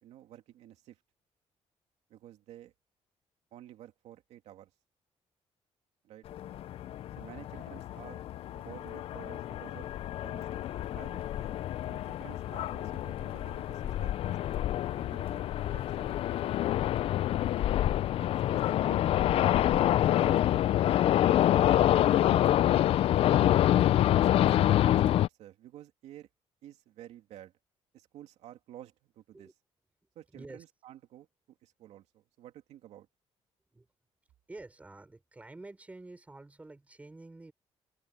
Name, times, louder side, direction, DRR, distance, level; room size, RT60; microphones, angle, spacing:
voice 1, 0.0-1.0 2.1-2.7 3.5-4.7 6.0-6.2 7.2-8.2 8.5-9.9 10.2-11.6 11.9-16.2 16.4-16.7 18.2-20.7 21.2-22.3 22.9-23.1 24.2-26.3 26.6-27.5 27.9-29.5 30.1-33.1, right 12 dB, 90° right, 2.6 m, -51 dB
sound 1, 6.3-25.3, left 12 dB, 60° left, 0.5 m, -27 dB
voice 2, 30.3-30.6 33.7-33.9 34.5-37.5, right 2 dB, 15° right, 5.1 m, -48 dB
cardioid pair, 150°, 11 cm